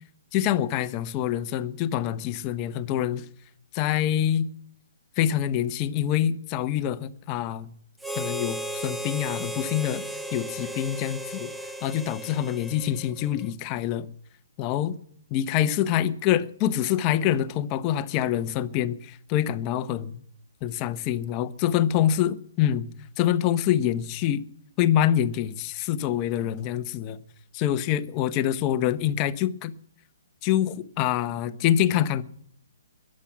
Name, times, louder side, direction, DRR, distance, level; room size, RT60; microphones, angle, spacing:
voice 1, 0.3-3.2 3.7-4.5 5.2-7.7 8.2-10.0 10.3-11.5 11.8-14.1 14.6-15.0 15.3-20.2 20.6-22.9 23.2-24.4 24.8-27.2 27.5-29.7 30.4-32.2, left 11 dB, 25° left, 0.9 m, -25 dB
Harmonica, 8.0-13.5, right 1 dB, ahead, 0.5 m, -35 dB
22.0 x 7.6 x 6.0 m
hypercardioid pair, 165°, 0 cm